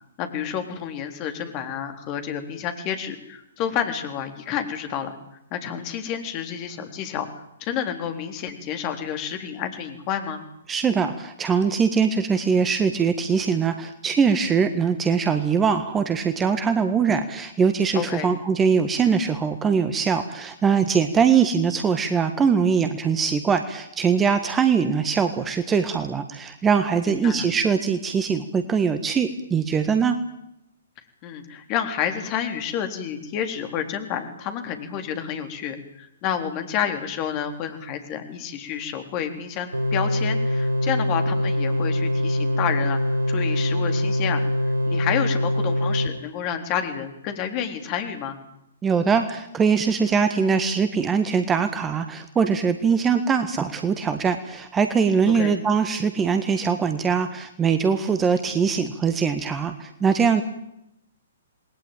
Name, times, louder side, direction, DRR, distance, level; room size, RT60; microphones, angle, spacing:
voice 1, 0.2-5.2 5.5-7.3 7.6-10.4 17.9-18.3 27.1-27.5 31.2-48.4 55.3-55.5, left 8 dB, 30° left, 7 dB, 3.8 m, -29 dB
voice 2, 10.7-30.2 48.8-60.4, right 6 dB, 15° right, 9 dB, 1.6 m, -22 dB
sound 1, 39.7-46.1, left 1 dB, 70° right, 3.2 m, -23 dB
27.5 x 20.5 x 9.1 m, 0.85 s
figure-of-eight pair, 120°, 0 cm